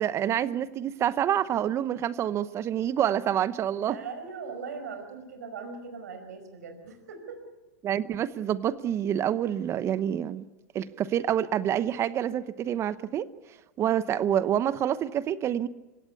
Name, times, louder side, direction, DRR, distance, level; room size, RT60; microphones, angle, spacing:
voice 1, 0.0-4.0 7.8-10.4 10.7-13.3 13.8-15.7, right 10 dB, 30° right, 16 dB, 0.8 m, -27 dB
voice 2, 3.9-7.4, right 5 dB, 80° right, 6 dB, 5.0 m, -40 dB
26.0 x 17.0 x 8.5 m, 1.1 s
hypercardioid pair, 120°, 9 cm